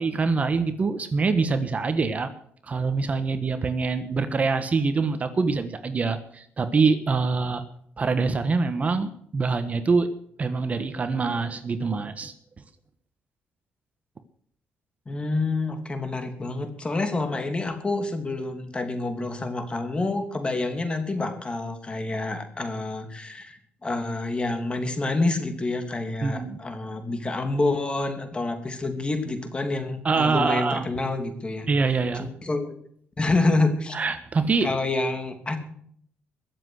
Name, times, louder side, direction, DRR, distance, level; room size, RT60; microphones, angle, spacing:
voice 1, 0.0-2.3 2.6-7.6 8.0-10.1 10.4-12.3 26.2-26.6 30.0-30.9 31.7-32.3 33.9-34.7, right 4 dB, 35° right, 10 dB, 1.3 m, -24 dB
voice 2, 15.1-31.7 32.1-32.7 33.2-34.0 34.6-35.6, left 2 dB, 25° left, 6 dB, 2.9 m, -27 dB
22.5 x 7.6 x 6.5 m, 0.65 s
cardioid pair, 95°, 4 cm